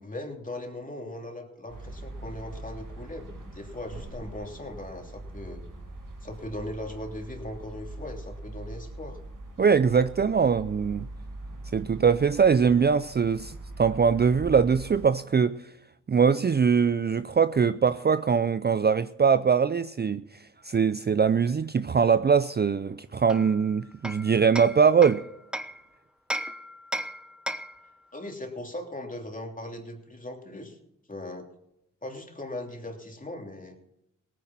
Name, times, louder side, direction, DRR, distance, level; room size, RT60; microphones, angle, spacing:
voice 1, 0.0-5.6 6.2-9.2 28.1-30.8 31.1-31.5 32.0-33.8, left 1 dB, 25° left, 2.9 m, -39 dB
sound 1, 1.7-15.1, right 2 dB, 75° right, 2.2 m, -42 dB
voice 2, 9.6-11.1 11.7-15.6 16.1-25.2, right 6 dB, 30° right, 0.5 m, -22 dB
Hammer, 23.3-25.8 26.3-27.9, equal, 5° right, 0.9 m, -35 dB
17.5 x 9.4 x 6.0 m
cardioid pair, 45°, 33 cm